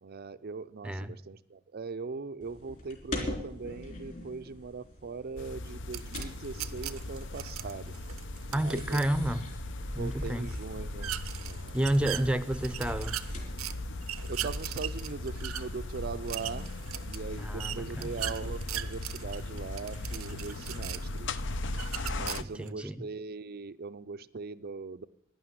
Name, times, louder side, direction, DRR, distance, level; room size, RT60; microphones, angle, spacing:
voice 1, 0.0-7.9 8.6-9.0 10.0-11.2 11.5-12.3 14.3-16.7 17.0-21.4 22.1-25.1, right 4 dB, 45° right, 0.5 m, -40 dB
voice 2, 0.8-1.2 8.5-9.5 9.9-10.5 11.7-13.2 17.4-18.1 22.4-23.0, right 1 dB, 5° right, 0.6 m, -30 dB
sound 1, 2.4-13.8, left 1 dB, 40° left, 3.8 m, -43 dB
sound 2, 5.4-22.4, left 2 dB, 60° left, 0.7 m, -38 dB
sound 3, 5.9-9.2 11.0-13.7 14.0-21.2 21.7-22.7, right 13 dB, 85° right, 0.7 m, -40 dB
12.0 x 10.5 x 9.5 m
head